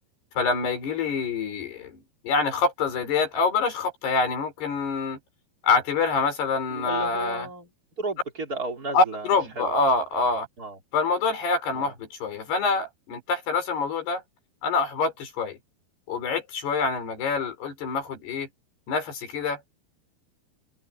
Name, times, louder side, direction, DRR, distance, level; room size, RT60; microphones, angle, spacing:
voice 1, 0.4-5.2 5.6-7.5 8.9-10.5 10.9-14.2 14.6-15.6 16.1-18.5 18.9-19.6, left 4 dB, 85° left, 7.3 m, -26 dB
voice 2, 6.7-7.7 8.0-9.7 10.6-10.8 11.7-11.9, right 2 dB, 25° right, 3.4 m, -34 dB
open air
omnidirectional pair, 4.5 m